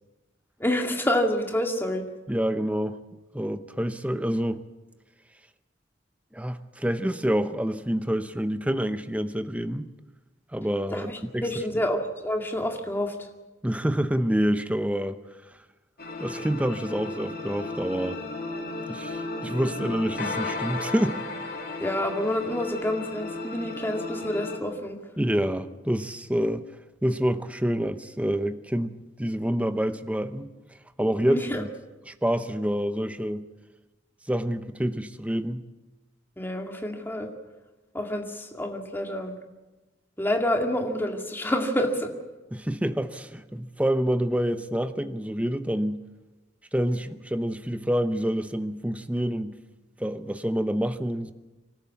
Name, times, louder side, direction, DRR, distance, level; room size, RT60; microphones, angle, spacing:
voice 1, 0.6-2.0 10.9-13.3 21.8-25.0 31.3-31.6 36.4-37.3 37.9-39.3 40.2-42.1, left 1 dB, 10° left, 3 dB, 2.1 m, -28 dB
voice 2, 2.3-3.0 3.3-4.6 6.3-9.9 10.5-11.5 11.7-11.8 13.6-15.2 16.2-18.2 18.9-21.3 25.2-26.6 27.0-30.5 31.0-31.7 32.1-33.5 34.3-35.6 42.5-46.0 46.7-49.6 50.0-51.3, equal, 5° right, 10 dB, 0.8 m, -27 dB
sound 1, 16.0-24.6, left 2 dB, 55° left, 3.1 m, -34 dB
25.0 x 13.0 x 8.4 m, 1.1 s
head